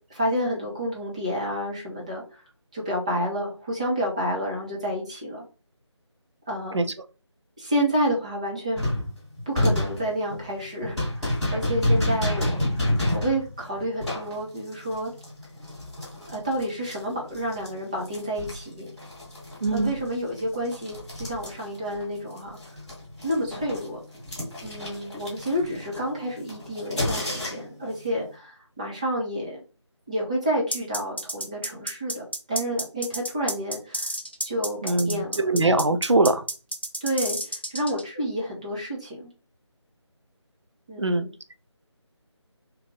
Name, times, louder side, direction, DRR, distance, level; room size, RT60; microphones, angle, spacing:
voice 1, 0.1-2.2 2.7-5.4 6.5-6.9 7.6-8.9 9.5-15.1 16.3-18.9 19.7-22.6 23.2-24.0 24.6-29.6 30.1-34.1 34.4-35.5 37.0-39.3 40.9-41.3, equal, 15° right, 0.7 m, -29 dB
sound 1, 8.8-17.7 18.0-22.0 22.3-27.8, left 1 dB, ahead, 1.3 m, -29 dB
voice 2, 19.6-19.9 34.8-36.4 41.0-41.3, right 2 dB, 70° right, 0.6 m, -22 dB
sound 2, 30.7-38.0, equal, 20° left, 0.3 m, -31 dB
3.2 x 3.0 x 3.7 m
figure-of-eight pair, 160°, 15 cm